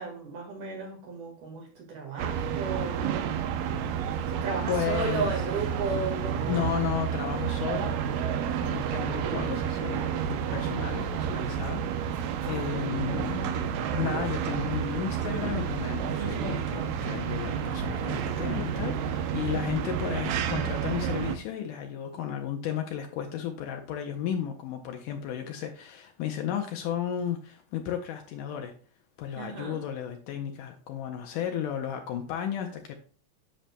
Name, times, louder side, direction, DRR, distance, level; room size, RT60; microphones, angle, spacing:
voice 1, 0.0-3.0 4.3-6.7 29.4-29.9, right 4 dB, 65° right, 3.2 m, -34 dB
sound 1, 2.2-21.4, right 8 dB, 90° right, 2.4 m, -30 dB
voice 2, 4.7-5.3 6.4-8.0 8.6-10.0 10.3-28.7 29.2-33.0, left 9 dB, 75° left, 2.2 m, -33 dB
10.0 x 6.7 x 2.2 m
omnidirectional pair, 3.9 m